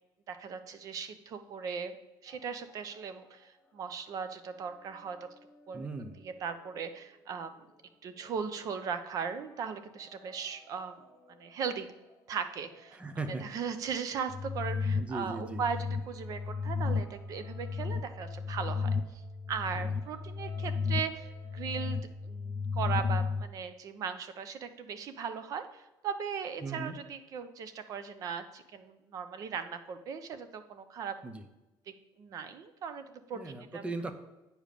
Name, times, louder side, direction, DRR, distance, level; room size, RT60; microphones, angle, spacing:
voice 1, 0.3-2.0 2.2-5.2 5.7-5.9 6.2-7.7 8.0-11.0 11.3-11.9 12.3-13.0 13.4-15.8 16.1-19.2 19.5-31.1 32.2-33.8, right 6 dB, 45° right, 10 dB, 0.8 m, -38 dB
sound 1, 2.3-14.8 15.5-22.0, left 3 dB, 10° left, 1.4 m, -61 dB
voice 2, 5.7-6.2 12.9-13.5 15.0-15.6 19.7-19.9 26.6-27.0 31.2-31.4 33.3-34.1, right 3 dB, 15° right, 9 dB, 0.7 m, -38 dB
sound 2, 14.3-23.4, left 5 dB, 35° left, 0.6 m, -34 dB
8.9 x 5.2 x 6.7 m, 0.98 s
cardioid pair, 165°, 8 cm